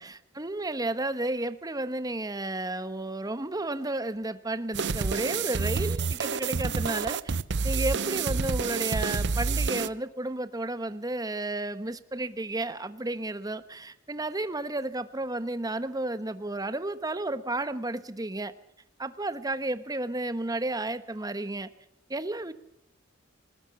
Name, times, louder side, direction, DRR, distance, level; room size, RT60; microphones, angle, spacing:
voice 1, 0.0-7.4 7.6-18.5 19.0-21.7 22.1-22.5, right 2 dB, 20° right, 13 dB, 1.1 m, -32 dB
sound 1, 4.7-9.9, right 5 dB, 60° right, 0.7 m, -28 dB
20.5 x 19.5 x 7.0 m, 0.81 s
head